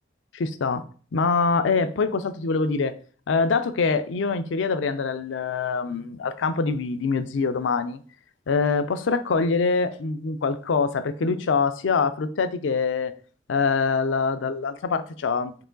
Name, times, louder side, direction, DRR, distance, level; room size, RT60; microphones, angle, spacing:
voice 1, 0.3-0.8 1.1-2.9 3.3-8.0 8.5-13.1 13.5-15.7, left 4 dB, 75° left, 0.4 m, -24 dB
4.7 x 3.0 x 3.8 m
head